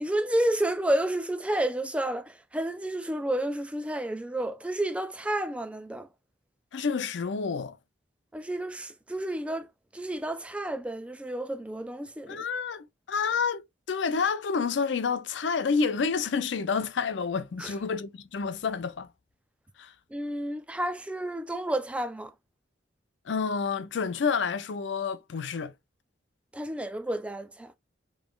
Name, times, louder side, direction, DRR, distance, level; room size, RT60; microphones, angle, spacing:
voice 1, 0.0-6.1 8.3-9.7 9.9-12.4 17.6-17.7 20.1-22.3 26.5-27.7, right 1 dB, 5° right, 0.3 m, -30 dB
voice 2, 6.7-7.8 12.3-19.1 19.8-19.9 23.3-25.7, left 5 dB, 75° left, 0.5 m, -29 dB
5.0 x 3.1 x 2.3 m
head